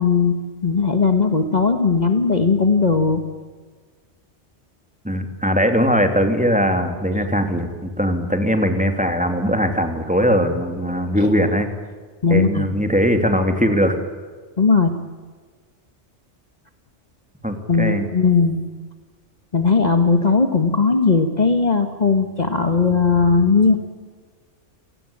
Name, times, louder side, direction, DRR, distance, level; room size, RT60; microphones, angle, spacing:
voice 1, 0.0-3.2 11.2-11.3 12.2-12.7 14.6-14.9 17.7-18.6 19.5-23.8, left 4 dB, 35° left, 7 dB, 1.5 m, -18 dB
voice 2, 5.0-11.7 12.3-14.0 17.4-18.1, equal, 5° right, 5 dB, 2.9 m, -20 dB
28.5 x 19.0 x 8.7 m, 1.5 s
omnidirectional pair, 1.3 m